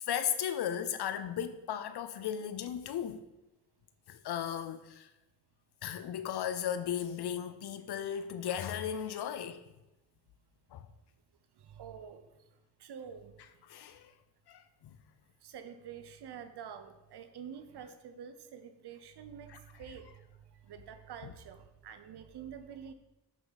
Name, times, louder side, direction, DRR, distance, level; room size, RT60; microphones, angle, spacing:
voice 1, 0.0-3.2 4.1-5.1 5.8-9.6 10.7-10.9 13.7-14.1 14.5-15.0, left 9 dB, 85° left, 0.6 m, -36 dB
voice 2, 11.6-12.3 12.8-13.3 15.4-20.3 20.5-22.9, right 8 dB, 85° right, 0.8 m, -47 dB
7.5 x 5.8 x 4.0 m
cardioid pair, 50°, 39 cm